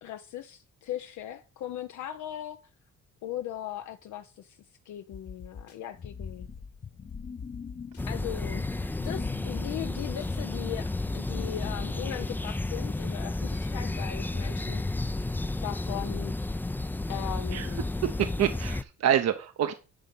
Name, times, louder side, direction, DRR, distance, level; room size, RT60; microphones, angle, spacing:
voice 1, 0.0-2.6 3.2-6.5 8.1-8.6 9.0-14.8 15.6-16.3 17.1-17.8, left 11 dB, 75° left, 0.6 m, -38 dB
sound 1, 5.1-5.8 6.2-6.6 7.1-8.0 8.8-8.9 9.2-9.3 9.6-10.3 10.8-11.2 11.6-12.5, left 6 dB, 55° left, 1.7 m, -44 dB
sound 2, 5.9-12.1, left 6 dB, 30° left, 0.8 m, -42 dB
sound 3, 8.0-18.8, left 2 dB, 5° left, 0.4 m, -32 dB
voice 2, 18.0-19.7, right 10 dB, 60° right, 0.7 m, -27 dB
10.5 x 4.0 x 5.3 m
cardioid pair, 90°, 30 cm